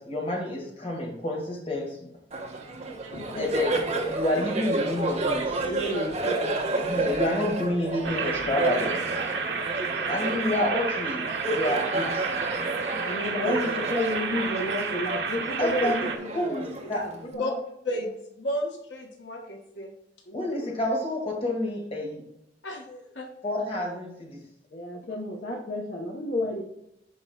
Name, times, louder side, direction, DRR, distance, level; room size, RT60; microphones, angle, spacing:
voice 1, 0.0-2.0 3.4-3.7 4.1-5.7 6.7-9.0 10.1-12.3 13.4-13.6 15.6-15.9 16.3-17.0 20.3-22.2 23.4-24.4, left 1 dB, 30° left, -1 dB, 2.1 m, -29 dB
Laughter, 2.3-17.3, right 2 dB, 35° right, 1.3 m, -31 dB
voice 2, 5.6-6.7 9.9-10.0 13.0-17.6 20.3-20.6 24.7-26.6, left 1 dB, 55° left, -2 dB, 1.2 m, -31 dB
sound 1, 8.0-16.2, right 5 dB, 70° right, 1.0 m, -31 dB
voice 3, 18.4-19.9 22.6-23.3 25.1-25.3, left 1 dB, 75° left, 2 dB, 1.3 m, -33 dB
12.5 x 4.8 x 2.4 m, 0.79 s
head